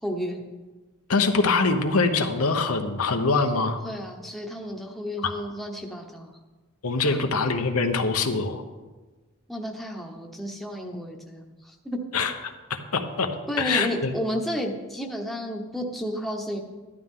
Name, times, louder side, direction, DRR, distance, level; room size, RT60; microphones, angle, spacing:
voice 1, 0.0-0.4 3.8-6.4 7.0-7.2 9.5-12.0 13.5-16.6, equal, ahead, 0 dB, 1.0 m, -32 dB
voice 2, 1.1-3.8 5.2-5.3 6.8-8.6 12.1-13.3 13.6-14.1, left 4 dB, 85° left, 5 dB, 1.1 m, -24 dB
14.5 x 11.5 x 3.8 m, 1.3 s
head